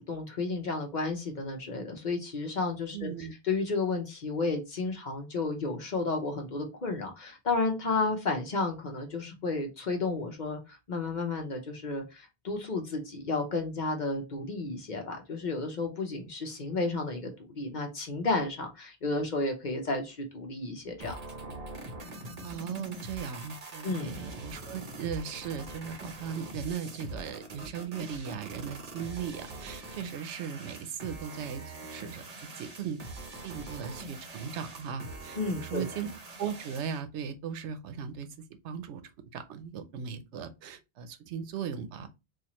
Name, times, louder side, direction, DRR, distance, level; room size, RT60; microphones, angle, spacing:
voice 1, 0.0-21.1 23.8-24.2 35.4-35.8, left 3 dB, 45° left, 0.8 m, -32 dB
voice 2, 2.9-3.3 22.4-33.0 33.4-36.1 36.4-39.0 39.3-42.1, right 7 dB, 85° right, 0.9 m, -38 dB
sound 1, 21.0-37.0, right 2 dB, 40° right, 0.7 m, -43 dB
4.3 x 2.4 x 3.0 m
omnidirectional pair, 1.2 m